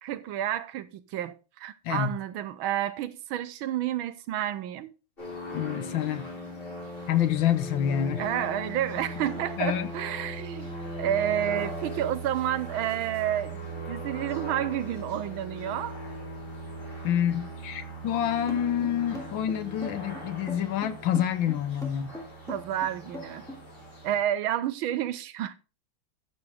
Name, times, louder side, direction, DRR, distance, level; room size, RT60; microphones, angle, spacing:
voice 1, 0.0-4.9 8.2-10.7 11.0-16.0 22.5-23.4 24.0-25.5, right 11 dB, 75° right, 1.4 m, -30 dB
sound 1, 5.2-24.2, equal, 25° left, 5.1 m, -39 dB
voice 2, 5.5-6.3 7.1-8.2 9.6-9.9 17.0-22.1, left 10 dB, 70° left, 1.5 m, -27 dB
sound 2, 18.5-23.6, left 1 dB, ahead, 2.5 m, -40 dB
12.5 x 7.0 x 3.5 m
omnidirectional pair, 2.4 m